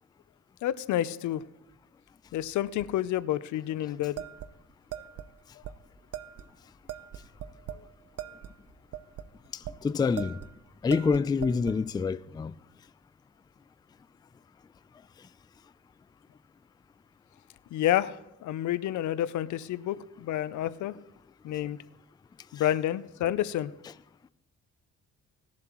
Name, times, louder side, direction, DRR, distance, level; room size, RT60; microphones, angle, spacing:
voice 1, 0.6-1.4 2.3-4.2 17.7-20.9 21.4-21.8 22.5-23.7, left 12 dB, 75° left, 0.5 m, -29 dB
sound 1, 4.2-5.3 5.6-5.7 6.1-6.5 6.9-7.9 8.2-9.8 10.2-10.5 10.9-11.8, right 10 dB, 55° right, 0.7 m, -40 dB
voice 2, 9.5-10.4 10.8-12.5, left 5 dB, 15° left, 0.3 m, -27 dB
19.5 x 7.4 x 3.0 m
cardioid pair, 90°, 30 cm